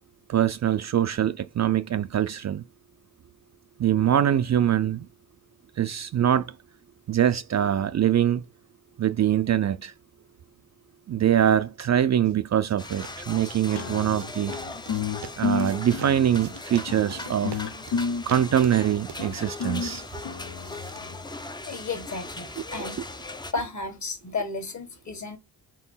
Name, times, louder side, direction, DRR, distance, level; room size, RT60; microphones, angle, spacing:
voice 1, 0.3-2.6 3.8-5.1 5.8-6.5 7.1-8.4 9.0-9.9 11.1-14.5 15.4-17.7 18.3-20.0, right 10 dB, 45° right, 0.4 m, -23 dB
sound 1, 12.2-21.9, right 9 dB, 85° right, 0.9 m, -47 dB
sound 2, 12.8-23.5, left 2 dB, 10° left, 0.5 m, -39 dB
sound 3, 13.7-21.2, left 5 dB, 85° left, 0.9 m, -32 dB
voice 2, 21.6-23.0 23.5-25.4, left 3 dB, 45° left, 1.6 m, -33 dB
4.6 x 3.8 x 5.5 m
cardioid pair, 100°, 40 cm